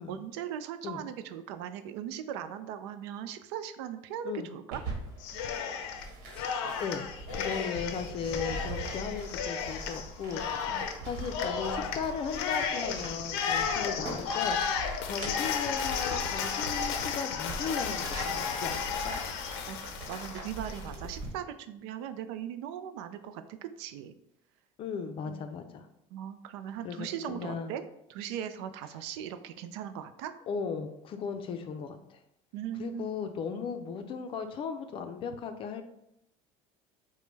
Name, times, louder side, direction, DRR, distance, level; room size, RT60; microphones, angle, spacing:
voice 1, 0.0-4.8 10.7-10.9 19.7-24.1 25.2-25.4 26.1-27.8 28.1-30.3 32.5-33.1 33.5-33.6, right 10 dB, 90° right, 10 dB, 0.4 m, -39 dB
sound 1, 4.7-21.3, right 2 dB, 70° right, 1.2 m, -42 dB
Cheering, 5.2-6.1 6.4-20.8, left 6 dB, 85° left, 0.5 m, -33 dB
voice 2, 6.3-19.1 24.8-25.9 26.8-27.7 30.5-32.2 32.8-35.8, left 6 dB, 40° left, 7 dB, 0.5 m, -37 dB
5.0 x 2.2 x 3.2 m, 0.80 s
cardioid pair, 125°, 14 cm